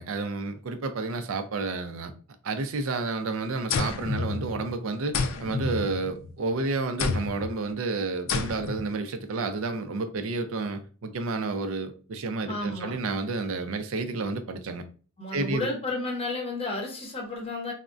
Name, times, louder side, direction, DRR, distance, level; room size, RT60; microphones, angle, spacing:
voice 1, 0.0-2.1 2.4-5.1 5.4-14.8 15.3-15.7, right 3 dB, 70° right, 0.5 m, -30 dB
sound 1, 3.7-4.7 5.1-6.4 7.0-7.5 8.3-8.9, left 4 dB, 65° left, 0.4 m, -30 dB
voice 2, 12.5-13.0 15.2-17.7, left 2 dB, 25° left, 0.8 m, -32 dB
3.5 x 2.1 x 2.5 m
head